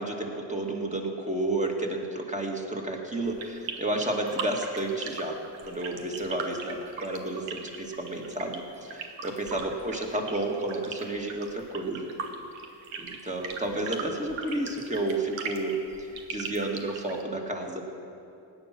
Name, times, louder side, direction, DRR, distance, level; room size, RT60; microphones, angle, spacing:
voice 1, 0.0-5.4 5.6-12.1 13.0-15.8 16.3-17.8, right 2 dB, 15° right, 1 dB, 2.3 m, -31 dB
sound 1, 3.3-17.2, right 5 dB, 85° right, 1.3 m, -39 dB
16.5 x 10.0 x 6.2 m, 2.7 s
cardioid pair, 75°, 44 cm